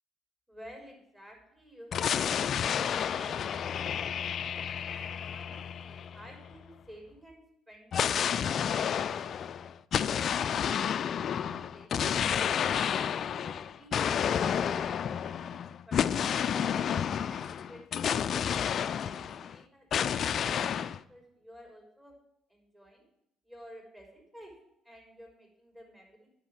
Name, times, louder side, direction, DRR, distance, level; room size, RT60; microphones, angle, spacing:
voice 1, 0.5-4.5 4.9-7.4 7.7-9.7 10.3-14.1 14.5-15.5 15.9-16.8 17.3-20.8 21.1-22.1 22.5-23.0 23.4-24.5 24.8-26.3, equal, 15° right, 0 dB, 5.3 m, -53 dB
sound 1, 1.9-6.6 7.9-19.6 19.9-21.0, left 8 dB, 50° left, 0.4 m, -30 dB
9.5 x 6.8 x 8.6 m, 0.79 s
hypercardioid pair, 60°, 0 cm